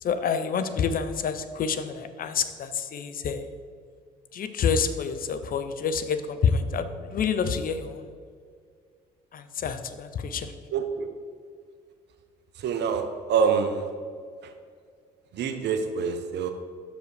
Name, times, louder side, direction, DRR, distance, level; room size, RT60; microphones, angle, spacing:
voice 1, 0.0-3.5 4.3-8.1 9.3-10.5, left 6 dB, 45° left, 10 dB, 0.6 m, -28 dB
voice 2, 10.7-11.1 12.6-13.9 14.4-14.5 15.3-16.5, right 6 dB, 60° right, 7 dB, 0.8 m, -26 dB
6.3 x 5.1 x 4.9 m, 2.1 s
hypercardioid pair, 55°, 20 cm